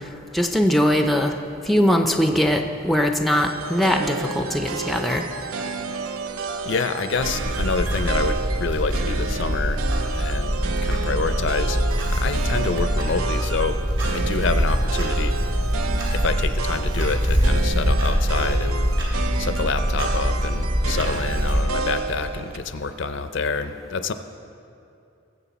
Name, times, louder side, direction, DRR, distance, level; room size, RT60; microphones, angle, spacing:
voice 1, 0.3-1.3 1.7-5.2, equal, ahead, 4 dB, 0.4 m, -21 dB
sound 1, 3.3-22.6, right 4 dB, 85° right, 0.6 m, -31 dB
voice 2, 6.6-9.8 10.1-11.8 12.1-13.8 14.1-15.3 16.1-18.9 19.4-24.1, left 4 dB, 60° left, 10 dB, 0.5 m, -27 dB
Clock, 7.2-21.6, equal, 60° right, 2.6 m, -23 dB
19.5 x 7.7 x 4.1 m, 2.6 s
head